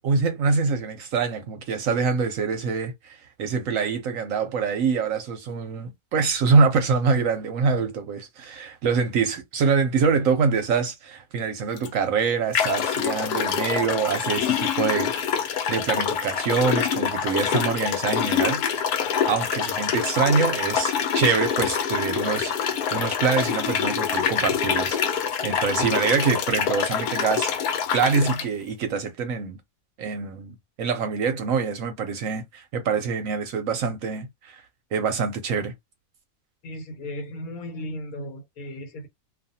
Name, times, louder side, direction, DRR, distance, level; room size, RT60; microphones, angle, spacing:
voice 1, 0.0-15.1 15.7-18.6 19.3-29.6 30.0-34.6 34.9-35.7, right 5 dB, 70° right, 0.9 m, -25 dB
sound 1, 11.8-11.9 12.5-28.5, left 7 dB, 85° left, 1.1 m, -25 dB
voice 2, 36.6-39.1, left 1 dB, 70° left, 1.3 m, -36 dB
2.5 x 2.4 x 2.7 m
omnidirectional pair, 1.6 m